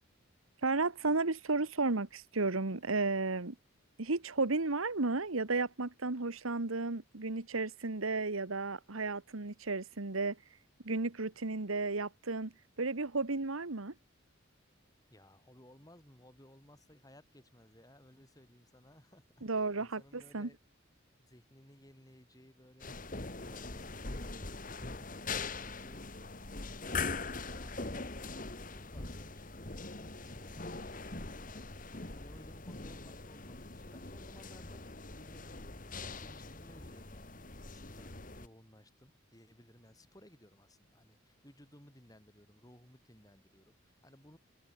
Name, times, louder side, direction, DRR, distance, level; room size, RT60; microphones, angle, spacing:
voice 1, 0.6-3.5 4.0-10.4 10.8-12.5 12.8-13.9 19.4-20.5, right 3 dB, 85° right, 1.5 m, -33 dB
voice 2, 15.1-19.2 19.5-20.6 21.1-26.1 26.8-35.4 35.8-37.3 37.6-38.1 38.4-44.4, equal, 20° left, 7.3 m, -60 dB
sound 1, 22.8-38.5, left 3 dB, 40° left, 2.2 m, -42 dB
head